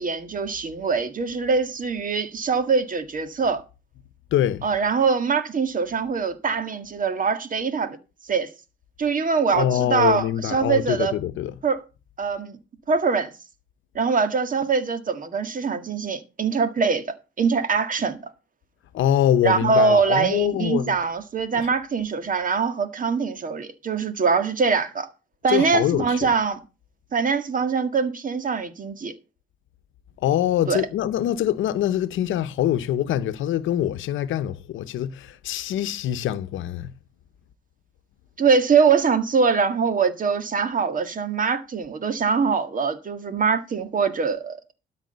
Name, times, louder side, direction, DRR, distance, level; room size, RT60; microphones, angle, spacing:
voice 1, 0.0-3.6 4.6-8.0 8.3-8.5 9.0-11.1 11.6-11.8 12.2-12.6 12.9-13.3 13.9-18.2 19.4-25.1 25.4-26.6 27.1-29.1 30.7-30.8 38.4-44.6, right 5 dB, 45° right, 1.8 m, -23 dB
voice 2, 4.3-4.6 9.5-11.5 18.9-20.9 21.5-21.7 25.5-26.3 30.2-36.9, left 11 dB, 80° left, 0.9 m, -24 dB
12.5 x 5.0 x 7.9 m
cardioid pair, 90°, 20 cm